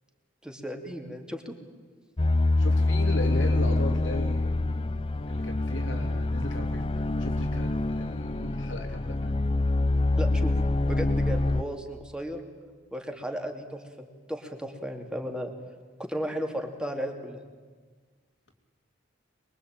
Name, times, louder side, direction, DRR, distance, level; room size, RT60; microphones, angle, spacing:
voice 1, 0.4-1.5 10.2-12.4 12.9-15.5 16.0-17.4, equal, 5° right, 4 dB, 2.7 m, -35 dB
sound 1, 2.2-11.6, left 2 dB, 30° left, 0.7 m, -26 dB
voice 2, 2.6-4.8 5.3-9.4, left 1 dB, 85° left, 5 dB, 3.3 m, -37 dB
24.0 x 22.0 x 9.0 m, 1.5 s
head